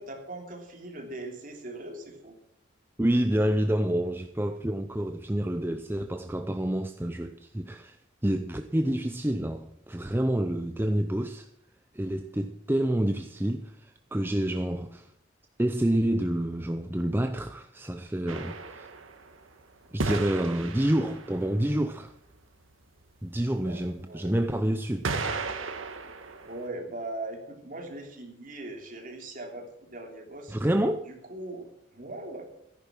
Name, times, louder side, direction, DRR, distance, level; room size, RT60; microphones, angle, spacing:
voice 1, 0.0-2.4 23.6-24.4 26.4-30.6 31.1-32.4, right 2 dB, 40° right, 3.1 m, -40 dB
voice 2, 3.0-8.0 8.2-11.5 11.9-15.1 15.6-18.9 19.9-22.1 23.2-25.0 30.5-31.1, right 1 dB, 10° right, 0.5 m, -28 dB
sound 1, 18.3-19.4 20.0-21.5 23.8-23.9 25.0-26.7, right 3 dB, 85° right, 1.5 m, -34 dB
14.0 x 10.5 x 6.1 m
head